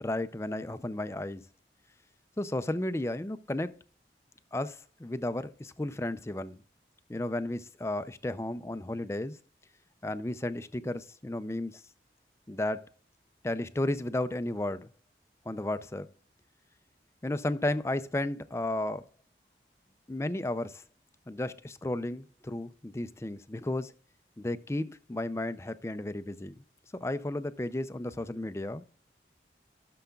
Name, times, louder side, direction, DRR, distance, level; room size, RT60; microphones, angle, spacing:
voice 1, 0.0-1.4 2.4-3.7 4.5-6.6 7.1-9.4 10.0-11.8 12.5-12.9 13.4-14.9 15.5-16.1 17.2-19.0 20.1-20.8 21.3-23.9 24.4-26.6 27.0-28.8, left 1 dB, 15° left, 0.4 m, -33 dB
15.5 x 6.8 x 2.3 m
head